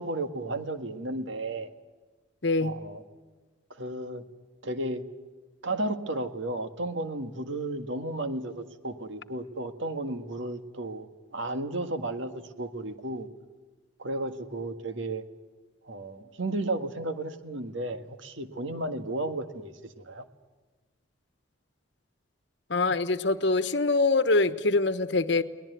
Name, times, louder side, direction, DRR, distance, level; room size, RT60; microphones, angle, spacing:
voice 1, 0.0-1.7 2.6-3.0 3.7-4.2 4.6-5.0 5.6-11.1 11.3-13.3 14.0-15.2 15.8-20.2, right 2 dB, 75° right, 8 dB, 1.7 m, -33 dB
voice 2, 2.4-2.7 22.7-25.4, left 3 dB, 60° left, 12 dB, 1.1 m, -24 dB
22.5 x 19.5 x 9.4 m, 1.3 s
head